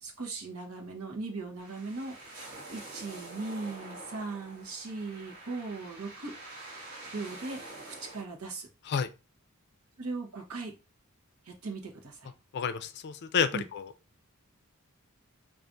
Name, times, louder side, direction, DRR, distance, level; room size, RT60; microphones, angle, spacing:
voice 1, 0.0-2.2 2.7-6.3 7.1-7.6 7.9-8.7 10.0-10.7 11.4-12.3 13.5-13.6, right 3 dB, 80° right, 0.9 m, -38 dB
sound 1, 1.6-8.2, right 2 dB, 40° right, 1.7 m, -46 dB
voice 2, 12.5-13.9, left 7 dB, 50° left, 0.4 m, -30 dB
4.6 x 2.5 x 2.6 m
head